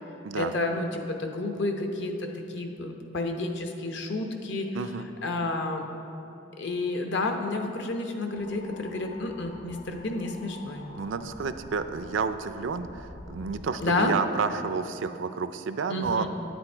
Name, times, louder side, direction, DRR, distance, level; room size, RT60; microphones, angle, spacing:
voice 1, 0.3-4.7 5.2-5.9 6.6-10.8 13.8-14.2 15.9-16.3, left 2 dB, 60° left, 4 dB, 0.8 m, -30 dB
voice 2, 4.7-5.1 10.9-16.3, right 5 dB, 70° right, 11 dB, 0.4 m, -30 dB
sound 1, 8.3-13.6, left 2 dB, 45° left, 1.1 m, -47 dB
9.6 x 8.1 x 4.4 m, 2.9 s
head